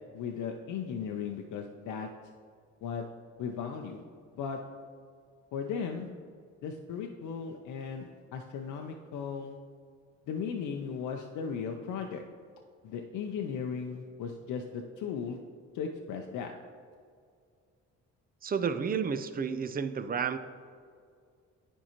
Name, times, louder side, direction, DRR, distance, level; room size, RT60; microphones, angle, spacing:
voice 1, 0.1-2.1 2.8-3.0 3.4-4.0 4.4-4.6 5.5-6.1 6.6-9.5 10.3-12.2 12.8-15.4 15.7-16.5, left 6 dB, 80° left, 3 dB, 0.6 m, -36 dB
voice 2, 18.4-20.4, right 6 dB, 30° right, 11 dB, 0.4 m, -31 dB
10.0 x 4.5 x 2.9 m, 2.2 s
cardioid pair, 90°, 30 cm